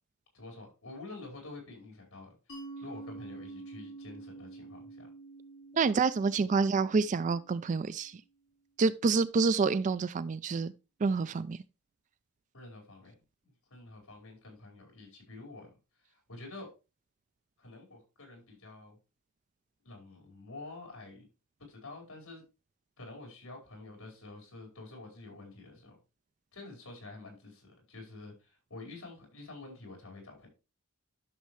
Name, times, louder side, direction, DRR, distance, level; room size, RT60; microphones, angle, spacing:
voice 1, 0.3-2.4 2.8-5.1 12.5-13.1 13.4-15.7 16.1-16.7 17.6-19.0 19.8-21.3 21.7-22.4 23.0-26.0 26.5-30.5, left 2 dB, 75° left, 4.9 m, -48 dB
Mallet percussion, 2.5-7.9, right 3 dB, 55° left, 4.4 m, -47 dB
voice 2, 5.7-8.2 8.8-10.7 11.0-11.6, right 4 dB, 35° right, 0.3 m, -28 dB
11.5 x 6.5 x 3.2 m
head